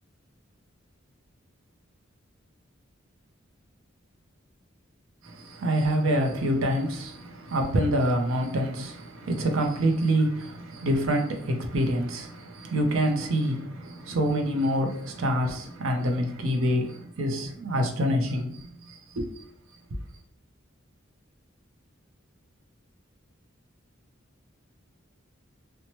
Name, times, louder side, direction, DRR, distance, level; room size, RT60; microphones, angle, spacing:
voice 1, 5.2-19.4, equal, 85° right, 0.5 m, -26 dB
2.8 x 2.1 x 2.9 m
head